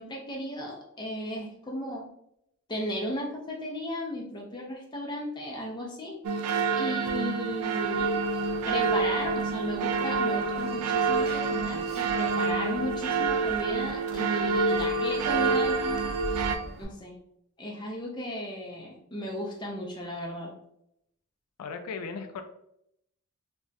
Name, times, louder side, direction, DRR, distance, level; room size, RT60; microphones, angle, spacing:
voice 1, 0.0-2.1 2.7-6.2 6.7-8.1 8.7-16.1 16.8-17.1 17.6-20.5, equal, 20° left, -1 dB, 0.5 m, -35 dB
sound 1, 6.2-16.6, right 4 dB, 90° right, 0.3 m, -27 dB
Telephone, 7.1-16.8, right 1 dB, 45° right, 0.6 m, -42 dB
voice 2, 21.6-22.4, left 5 dB, 80° left, 6 dB, 0.3 m, -36 dB
2.4 x 2.2 x 3.9 m, 0.77 s
head